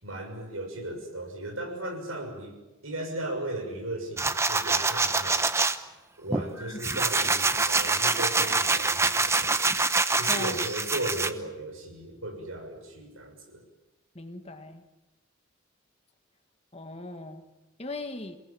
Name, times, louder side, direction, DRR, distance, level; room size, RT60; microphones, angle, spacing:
voice 1, 0.0-2.5 2.8-5.4 6.2-9.5 10.1-13.6, right 1 dB, 80° right, 4 dB, 6.6 m, -36 dB
sound 1, 4.2-5.8 6.3-11.3, right 3 dB, 15° right, 0.9 m, -25 dB
voice 2, 10.3-10.7 14.2-14.8 16.7-17.4 17.8-18.4, left 2 dB, 30° left, 7 dB, 1.6 m, -38 dB
28.0 x 19.5 x 8.6 m, 1.1 s
head